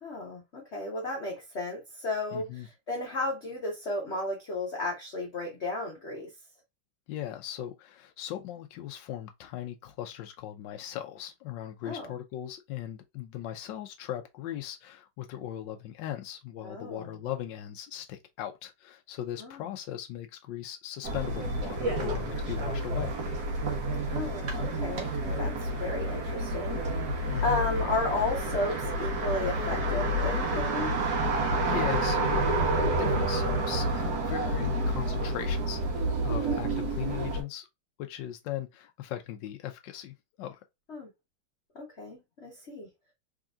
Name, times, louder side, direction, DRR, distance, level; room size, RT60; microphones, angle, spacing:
voice 1, 0.0-6.3 11.8-12.1 16.6-17.1 19.4-19.5 24.1-27.1 27.4-30.9 36.4-36.6 40.9-41.1 41.7-42.9, left 2 dB, 45° left, 1.0 m, -34 dB
voice 2, 2.3-2.7 7.1-23.1 27.3-27.6 31.2-37.7 38.0-40.6, left 11 dB, 75° left, 1.1 m, -39 dB
sound 1, 21.0-37.4, right 1 dB, 55° right, 1.6 m, -29 dB
3.7 x 3.5 x 2.3 m
omnidirectional pair, 2.3 m